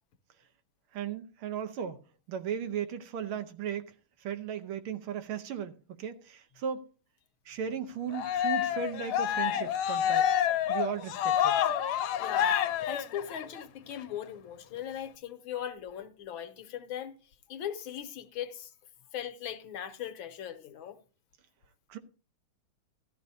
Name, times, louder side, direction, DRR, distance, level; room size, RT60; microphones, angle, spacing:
voice 1, 0.9-2.0 2.3-3.9 4.2-5.7 6.0-6.8 7.5-10.3 10.7-11.6 21.9-22.0, right 8 dB, 80° right, 1.8 m, -36 dB
Cheering, 8.1-13.6, left 9 dB, 85° left, 1.6 m, -28 dB
voice 2, 12.2-17.1 17.5-18.7 19.1-21.0, left 10 dB, 70° left, 1.6 m, -39 dB
14.0 x 11.0 x 2.7 m
omnidirectional pair, 2.3 m